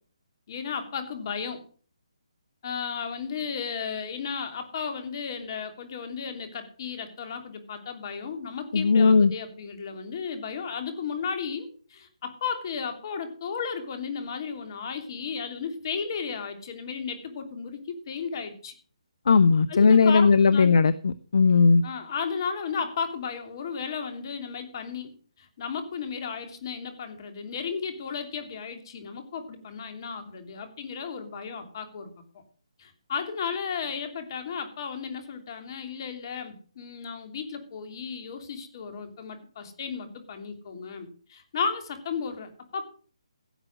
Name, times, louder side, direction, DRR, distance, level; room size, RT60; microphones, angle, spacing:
voice 1, 0.5-1.6 2.6-18.7 19.7-20.7 21.8-32.4 32.8-42.8, left 6 dB, 45° left, 7 dB, 2.9 m, -34 dB
voice 2, 8.7-9.3 19.3-21.8, left 4 dB, 60° left, 16 dB, 0.7 m, -18 dB
16.0 x 7.5 x 6.4 m, 0.43 s
figure-of-eight pair, 145°, 3 cm